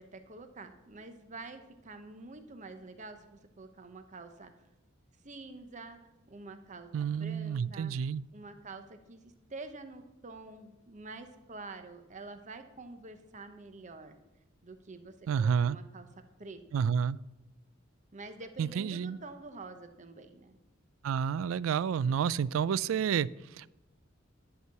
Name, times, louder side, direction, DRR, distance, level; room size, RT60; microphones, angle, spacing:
voice 1, 0.0-4.5 5.2-6.0 6.3-7.9 8.3-14.2 14.6-16.1 16.4-16.6 18.1-20.6, right 3 dB, 40° right, 0.8 m, -47 dB
voice 2, 6.9-8.2 15.3-15.8 16.7-17.2 18.6-19.2 21.0-23.3 23.6-23.7, right 7 dB, 85° right, 0.3 m, -29 dB
11.0 x 4.7 x 6.8 m
head